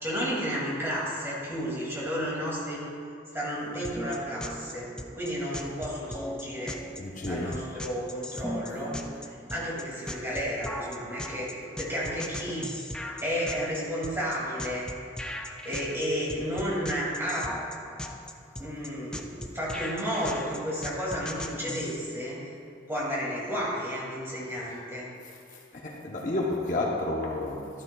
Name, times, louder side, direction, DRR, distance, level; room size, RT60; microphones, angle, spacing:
voice 1, 0.0-2.8 3.3-6.8 7.3-9.0 9.5-11.5 11.8-12.7 13.2-14.9 15.6-17.5 18.6-22.4 22.9-25.1, equal, 10° right, -6 dB, 2.2 m, -32 dB
sound 1, 3.8-22.0, left 1 dB, 5° left, 0.3 m, -38 dB
voice 2, 7.0-7.6 25.7-27.8, left 2 dB, 40° left, -2 dB, 0.8 m, -31 dB
12.5 x 11.0 x 2.3 m, 2.4 s
head